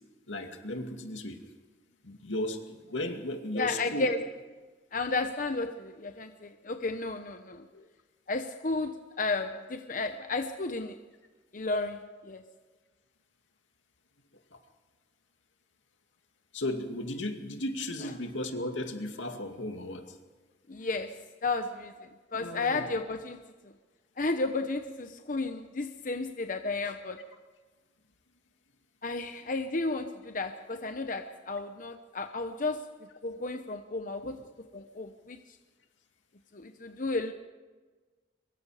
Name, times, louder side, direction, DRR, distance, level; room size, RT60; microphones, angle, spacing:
voice 1, 0.3-1.4 2.0-4.1 7.7-7.9 14.5-14.6 16.5-20.2 22.3-22.8 27.2-27.3 34.2-34.4, left 1 dB, 85° left, 5 dB, 2.3 m, -35 dB
voice 2, 3.5-4.2 4.9-7.7 8.3-11.0 11.5-12.4 20.7-21.9 22.3-23.4 24.2-27.2 29.0-34.4 34.7-35.4 36.5-37.3, left 3 dB, 45° left, 7 dB, 0.9 m, -33 dB
23.5 x 22.5 x 5.0 m, 1.3 s
head